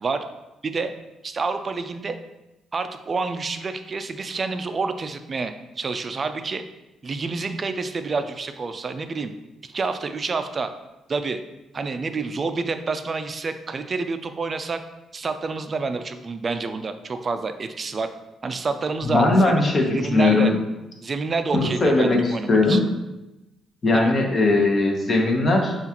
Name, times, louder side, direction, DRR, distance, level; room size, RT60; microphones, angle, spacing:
voice 1, 0.6-0.9 1.2-2.2 2.7-6.6 7.0-9.3 9.6-10.7 11.1-11.4 11.7-14.8 15.1-18.1 18.4-20.5 21.0-22.8 23.9-24.1, right 4 dB, 40° right, 9 dB, 0.4 m, -28 dB
voice 2, 19.0-20.5 21.5-22.9 23.8-25.8, left 2 dB, 35° left, 1 dB, 0.9 m, -19 dB
6.8 x 2.4 x 2.9 m, 0.99 s
cardioid pair, 90°, 0 cm